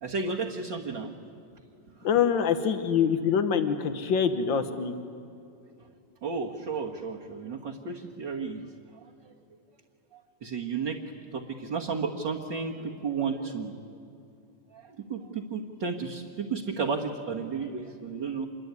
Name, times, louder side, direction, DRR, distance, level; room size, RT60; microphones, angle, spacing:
voice 1, 0.0-1.1 6.2-8.6 10.4-11.0 11.3-13.7 14.7-18.5, right 5 dB, 50° right, -1 dB, 1.5 m, -33 dB
voice 2, 2.0-4.9, left 7 dB, 80° left, 9 dB, 1.0 m, -25 dB
26.5 x 22.0 x 9.5 m, 2.5 s
omnidirectional pair, 3.7 m